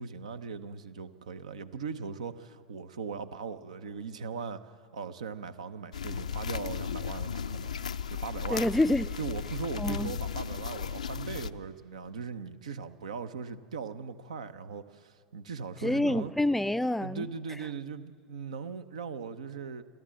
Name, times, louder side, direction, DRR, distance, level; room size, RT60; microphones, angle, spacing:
voice 1, 0.0-7.8 8.1-8.7 9.2-16.3 17.0-19.8, right 5 dB, 75° right, 0.8 m, -39 dB
sound 1, 5.9-11.5, left 7 dB, 80° left, 0.4 m, -35 dB
voice 2, 8.5-9.1 9.8-10.1 15.8-17.3, left 1 dB, 5° left, 0.4 m, -27 dB
27.0 x 13.5 x 7.5 m
figure-of-eight pair, 80°, 4 cm